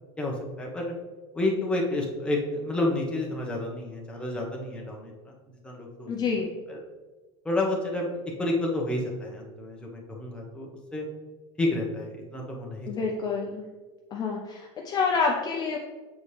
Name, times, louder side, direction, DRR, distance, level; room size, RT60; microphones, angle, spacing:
voice 1, 0.2-0.9 1.3-5.4 5.6-6.1 6.7-6.8 7.4-8.1 8.4-11.1 11.6-13.1, left 2 dB, 5° left, -2 dB, 1.0 m, -30 dB
voice 2, 6.1-6.5 12.9-13.7 14.1-15.8, left 5 dB, 30° left, 0 dB, 0.6 m, -28 dB
7.0 x 4.2 x 3.3 m, 1.3 s
supercardioid pair, 140°, 15 cm